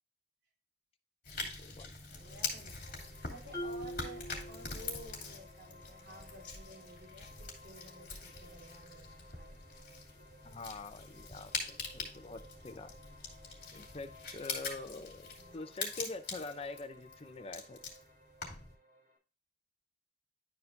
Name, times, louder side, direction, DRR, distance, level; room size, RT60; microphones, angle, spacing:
sound 1, 1.2-18.8, left 4 dB, 55° left, 2.5 m, -44 dB
voice 1, 1.4-1.9 10.4-13.0 13.7-17.8, left 3 dB, 35° left, 10 dB, 0.6 m, -45 dB
voice 2, 2.1-9.6 15.4-15.7, right 1 dB, 75° right, -1 dB, 3.4 m, -53 dB
sound 2, 2.2-19.2, left 1 dB, 55° right, 2.6 m, -59 dB
Marimba xylophone, 3.5-5.3, equal, 15° left, 1.6 m, -43 dB
11.0 x 4.7 x 2.6 m, 0.35 s
head